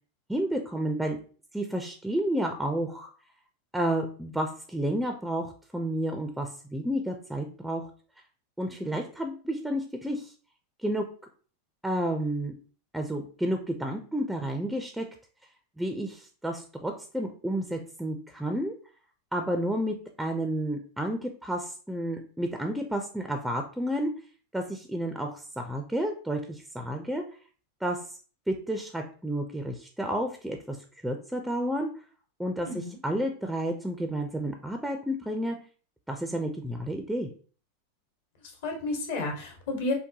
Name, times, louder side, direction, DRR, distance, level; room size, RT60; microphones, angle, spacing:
voice 1, 0.3-1.2 1.5-3.1 3.7-7.9 8.6-10.3 10.8-11.1 11.8-12.5 12.9-15.1 15.8-18.7 19.3-24.1 24.5-27.2 27.8-28.2 28.5-30.8 31.0-31.9 32.4-35.6 36.1-37.3, right 1 dB, 5° right, 4 dB, 0.4 m, -31 dB
voice 2, 32.6-33.0 38.6-39.9, left 2 dB, 70° left, 2 dB, 1.1 m, -32 dB
3.8 x 2.2 x 2.7 m, 0.40 s
supercardioid pair, 120°, 0 cm